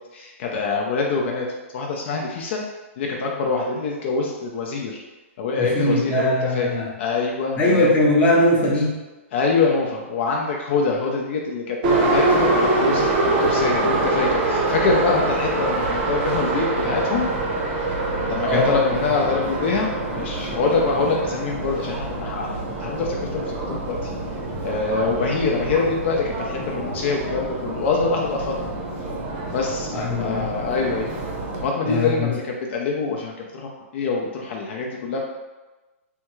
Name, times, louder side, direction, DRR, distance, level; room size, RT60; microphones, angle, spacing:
voice 1, 0.1-1.5 1.7-2.6 3.0-5.0 5.4-6.7 7.0-7.9 9.3-13.1 13.4-17.3 18.3-19.9 20.1-24.0 24.6-28.7 29.5-31.1 31.6-35.2, left 4 dB, 50° left, 0 dB, 0.4 m, -25 dB
voice 2, 5.6-6.9 7.6-9.0 18.4-18.8 29.9-30.5 31.8-32.3, left 1 dB, 20° left, -4 dB, 0.7 m, -20 dB
Subway metro underground, 11.8-31.7, right 2 dB, 40° right, 0.7 m, -25 dB
3.4 x 2.3 x 3.0 m, 1.2 s
hypercardioid pair, 145°, 7 cm